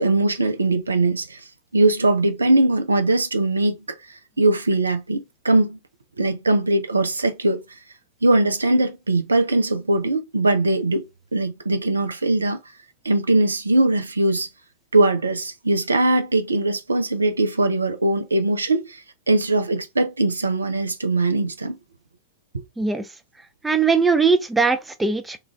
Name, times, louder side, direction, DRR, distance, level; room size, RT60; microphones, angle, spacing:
voice 1, 0.0-1.4 1.7-3.8 4.4-5.8 6.2-7.6 8.2-11.0 11.3-12.6 13.0-14.5 14.9-19.0 19.3-21.8, right 2 dB, 75° right, 0.4 m, -20 dB
voice 2, 22.8-23.1 23.6-25.4, right 4 dB, 10° right, 0.4 m, -20 dB
3.0 x 2.4 x 2.2 m
figure-of-eight pair, 90°, 0 cm